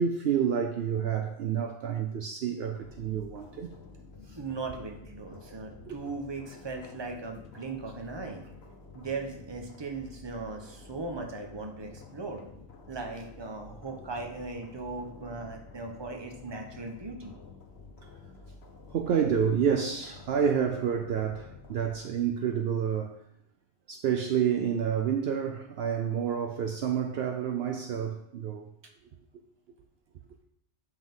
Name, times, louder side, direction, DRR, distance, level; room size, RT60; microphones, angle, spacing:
voice 1, 0.0-3.7 4.3-4.4 5.9-6.0 18.9-23.2 23.9-28.7, right 8 dB, 65° right, 0.8 m, -29 dB
sound 1, 2.7-22.0, left 3 dB, 65° left, 1.1 m, -50 dB
voice 2, 4.4-8.4 8.9-12.4 12.9-17.3, right 3 dB, 25° right, 1.0 m, -38 dB
8.2 x 5.5 x 3.7 m
omnidirectional pair, 1.2 m